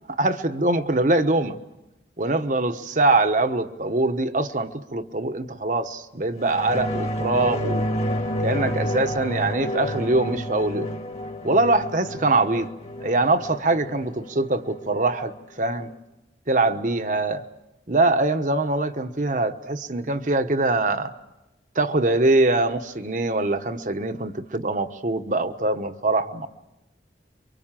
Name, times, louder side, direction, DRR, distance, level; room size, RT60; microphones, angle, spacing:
voice 1, 0.2-1.6 2.2-7.9 8.4-10.9 11.4-12.7 13.0-15.9 16.5-17.4 17.9-21.1 21.7-26.5, right 2 dB, 45° right, 1.1 m, -23 dB
sound 1, 6.4-15.4 15.8-15.9, left 1 dB, 35° left, 1.7 m, -30 dB
28.0 x 24.5 x 7.5 m
head